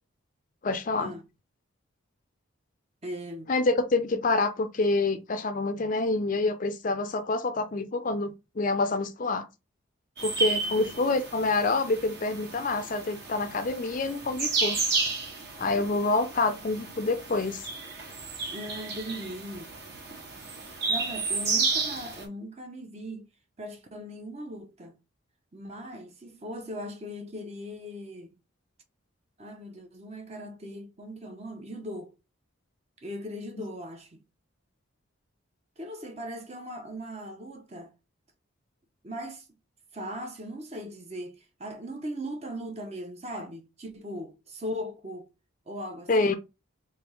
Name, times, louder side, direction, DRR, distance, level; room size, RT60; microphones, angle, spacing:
voice 1, 0.6-1.1 3.5-9.5 10.2-14.8 15.6-17.6 46.1-46.3, left 3 dB, 40° left, 0.5 m, -27 dB
voice 2, 3.0-3.5 4.1-4.2 10.8-11.1 18.5-19.7 20.6-23.3 23.6-25.0 25.5-28.3 29.4-32.2 33.0-34.2 35.8-37.9 39.0-39.5 39.9-45.3 45.7-46.4, equal, 30° right, 0.8 m, -39 dB
sound 1, 10.2-22.2, right 4 dB, 55° right, 1.3 m, -32 dB
3.5 x 2.7 x 4.6 m
head